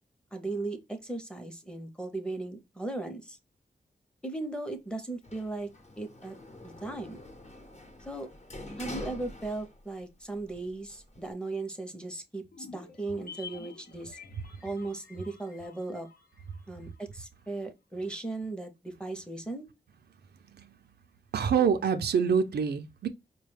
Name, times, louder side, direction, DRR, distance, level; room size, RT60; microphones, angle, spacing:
voice 1, 0.3-3.4 4.2-5.7 6.0-6.4 6.6-7.2 8.1-8.3 8.8-14.2 14.6-16.1 16.7-19.7, right 2 dB, 5° left, 0.7 m, -37 dB
Sliding door, 5.2-10.1 10.4-11.3, left 1 dB, 40° left, 0.8 m, -45 dB
sound 1, 12.5-17.0 17.3-17.4, left 5 dB, 70° left, 0.7 m, -49 dB
voice 2, 21.3-23.1, right 6 dB, 85° right, 0.5 m, -26 dB
4.5 x 2.2 x 3.2 m
wide cardioid pair, 105°, 17 cm